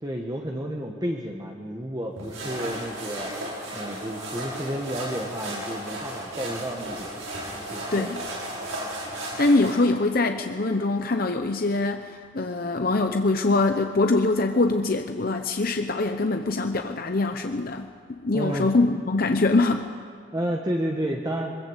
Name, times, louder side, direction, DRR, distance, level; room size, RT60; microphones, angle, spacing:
voice 1, 0.0-3.3 3.7-7.1 7.7-8.1 18.3-18.7 20.3-21.6, right 1 dB, 20° right, 0 dB, 1.4 m, -31 dB
sound 1, 2.2-9.8, right 1 dB, 85° right, 7.2 m, -34 dB
voice 2, 9.4-19.9, left 2 dB, 45° left, 6 dB, 0.8 m, -23 dB
22.0 x 20.5 x 8.1 m, 2.1 s
head